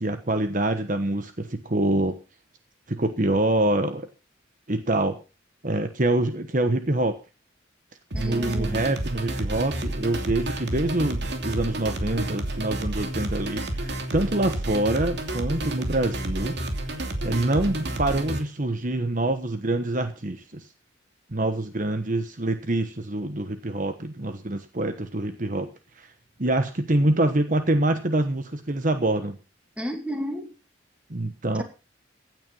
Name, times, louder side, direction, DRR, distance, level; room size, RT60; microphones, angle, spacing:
voice 1, 0.0-2.1 2.9-4.1 4.7-5.2 5.6-7.1 8.2-16.5 17.2-20.7 21.3-25.7 26.0-26.1 26.4-29.4 31.1-31.6, right 1 dB, 40° right, 8 dB, 1.2 m, -25 dB
voice 2, 8.1-8.9 29.8-30.5, equal, 5° right, 5 dB, 2.6 m, -32 dB
sound 1, 8.1-18.4, right 1 dB, 60° right, 2.9 m, -30 dB
16.0 x 9.5 x 5.5 m, 0.33 s
head